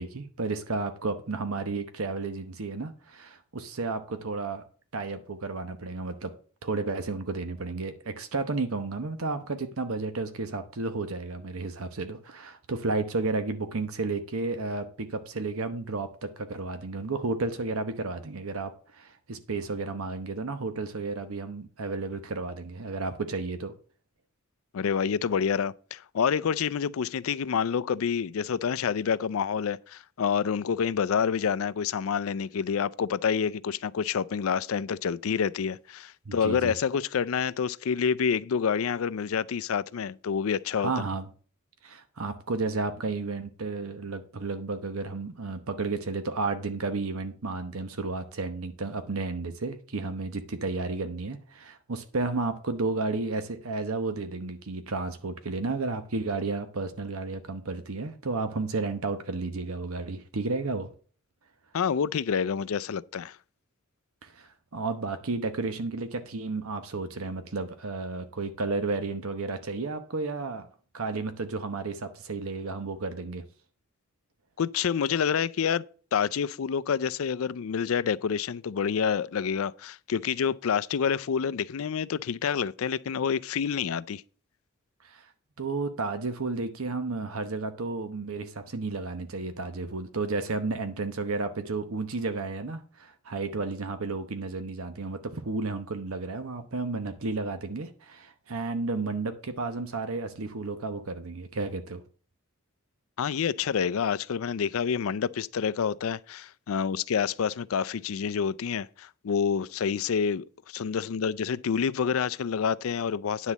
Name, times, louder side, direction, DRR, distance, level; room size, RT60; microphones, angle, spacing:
voice 1, 0.0-4.6 4.9-6.3 6.6-23.7 36.3-36.7 40.8-41.3 41.8-60.9 64.2-70.7 70.9-73.4 85.0-85.2 85.6-102.0, right 3 dB, 75° right, 0.9 m, -32 dB
voice 2, 24.7-40.9 61.7-63.4 74.6-75.8 76.1-84.2 103.2-113.5, left 7 dB, 70° left, 0.4 m, -28 dB
9.9 x 4.1 x 7.2 m
head